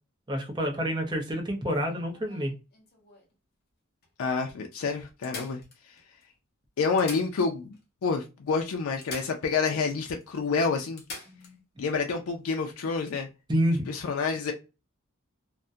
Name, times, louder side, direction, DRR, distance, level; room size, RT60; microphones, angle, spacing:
voice 1, 0.3-2.5 11.3-11.6 13.5-13.9, equal, 20° right, 0.6 m, -28 dB
sound 1, 1.7-3.3 4.0-4.1 4.4-4.5 5.2-6.2 6.8-7.8 8.1-8.2 9.0-9.9 10.2-10.3 11.0-11.5 13.5-13.7, left 3 dB, 45° left, 0.7 m, -44 dB
voice 2, 4.2-5.6 6.8-7.8 8.0-11.0 11.8-13.3 13.9-14.5, left 4 dB, 75° left, 0.4 m, -28 dB
2.4 x 2.1 x 2.5 m
head